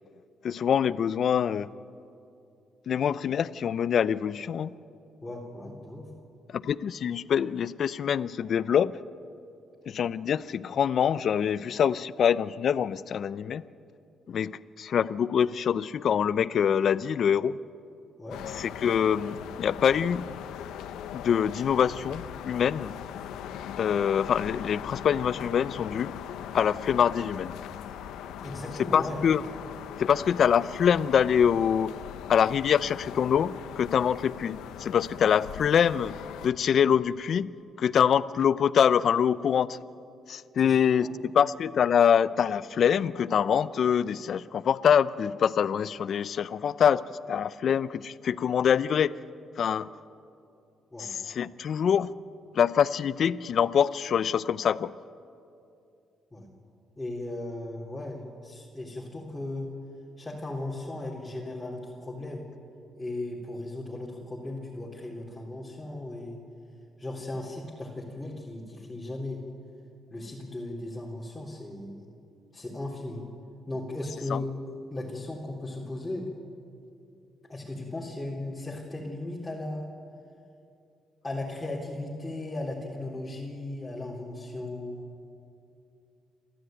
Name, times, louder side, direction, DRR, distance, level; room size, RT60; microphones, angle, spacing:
voice 1, 0.4-1.7 2.9-4.7 6.5-9.0 9.9-13.6 14.3-17.6 18.5-20.3 21.1-22.9 23.8-26.1 26.5-27.6 28.8-29.4 30.0-31.9 32.3-36.2 36.4-37.5 37.8-39.8 40.3-49.1 49.6-49.9 51.0-52.1 52.5-54.9 74.3-74.4, left 8 dB, 60° left, 17 dB, 0.6 m, -25 dB
voice 2, 5.2-6.1 18.2-18.4 28.4-29.2 40.6-41.2 50.9-51.1 56.3-56.5 57.0-59.7 60.2-62.5 63.0-66.4 67.0-69.4 70.1-72.0 72.5-73.3 73.7-76.3 77.5-79.9 81.2-85.0, left 2 dB, 10° left, -6 dB, 3.8 m, -36 dB
sound 1, 18.3-36.5, left 9 dB, 90° left, 0.9 m, -40 dB
28.5 x 13.5 x 9.3 m, 2.6 s
cardioid pair, 90°, 0 cm